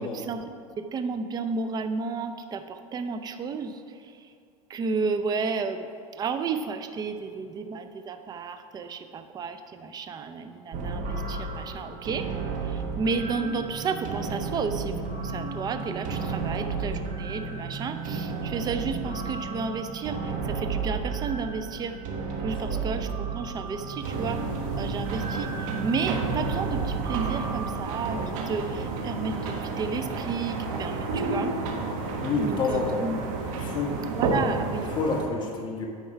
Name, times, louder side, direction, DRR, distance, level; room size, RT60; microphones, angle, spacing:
voice 1, 0.0-4.3 4.7-12.3 12.6-22.0 22.4-24.4 24.8-31.6 32.4-33.3 34.1-34.9, right 4 dB, 20° right, 9 dB, 0.5 m, -32 dB
sound 1, 10.7-28.3, right 4 dB, 45° right, 1.2 m, -32 dB
sound 2, 24.0-35.3, right 3 dB, 65° right, 1.3 m, -31 dB
voice 2, 32.2-33.0 33.5-34.0 34.9-35.8, left 4 dB, 25° left, -1 dB, 1.3 m, -28 dB
9.3 x 4.4 x 5.6 m, 2.4 s
supercardioid pair, 125°, 19 cm